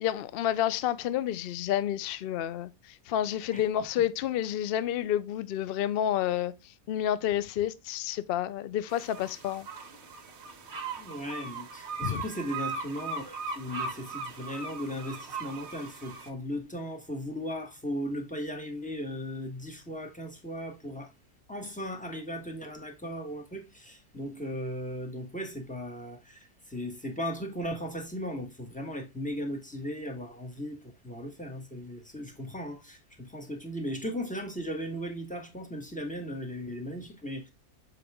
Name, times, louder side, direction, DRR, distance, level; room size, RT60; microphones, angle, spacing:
voice 1, 0.0-6.5 6.9-9.7 12.0-12.2, left 11 dB, 70° left, 0.5 m, -29 dB
sound 1, 8.9-16.3, right 4 dB, 50° right, 1.2 m, -39 dB
voice 2, 11.0-21.1 21.5-37.5, equal, 5° left, 1.3 m, -37 dB
6.9 x 4.9 x 3.4 m
omnidirectional pair, 1.6 m